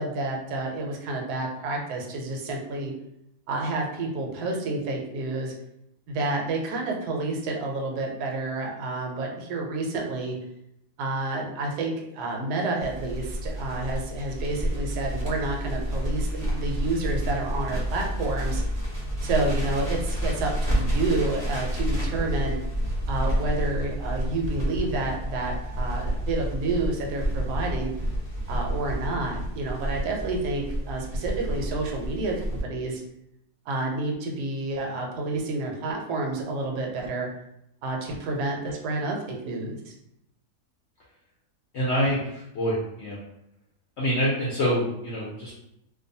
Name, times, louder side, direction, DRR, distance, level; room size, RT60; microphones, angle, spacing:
voice 1, 0.0-2.9 3.5-5.5 6.1-10.4 11.0-18.6 19.2-22.5 23.1-27.9 28.5-33.0 33.7-37.3 37.8-39.9, right 2 dB, 80° right, 1 dB, 1.1 m, -29 dB
Crackle, 12.8-32.6, equal, 15° right, 0.8 m, -29 dB
voice 2, 41.7-43.2 44.0-45.5, equal, 65° left, -6 dB, 0.7 m, -26 dB
2.5 x 2.2 x 2.6 m, 0.80 s
omnidirectional pair, 1.7 m